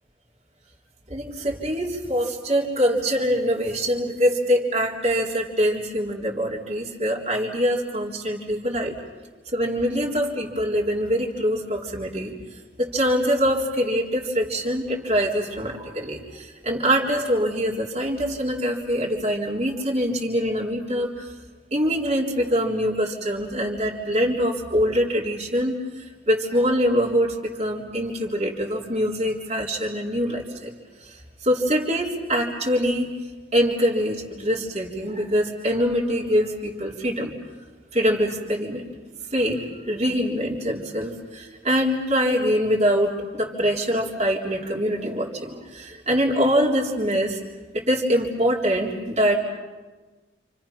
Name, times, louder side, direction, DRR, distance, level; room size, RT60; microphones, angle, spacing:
voice 1, 1.1-8.9 9.5-12.3 12.8-21.3 21.7-30.7 31.0-31.2 31.4-33.1 33.5-37.3 37.9-38.8 39.3-47.4 47.7-49.4, equal, 35° right, -2 dB, 3.8 m, -24 dB
29.5 x 28.5 x 5.9 m, 1.3 s
head